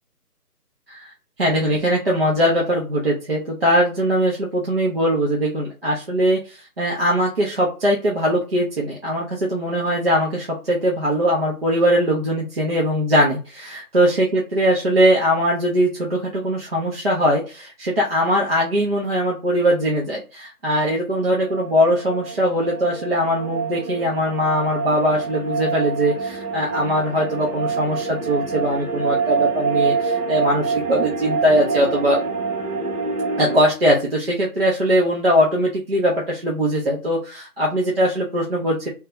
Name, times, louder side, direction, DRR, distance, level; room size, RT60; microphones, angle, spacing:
voice 1, 1.4-32.2 33.4-38.9, equal, 40° right, -4 dB, 0.6 m, -21 dB
sound 1, 21.3-33.6, right 5 dB, 60° right, 1.2 m, -26 dB
2.8 x 2.2 x 3.7 m, 0.33 s
figure-of-eight pair, 160°, 47 cm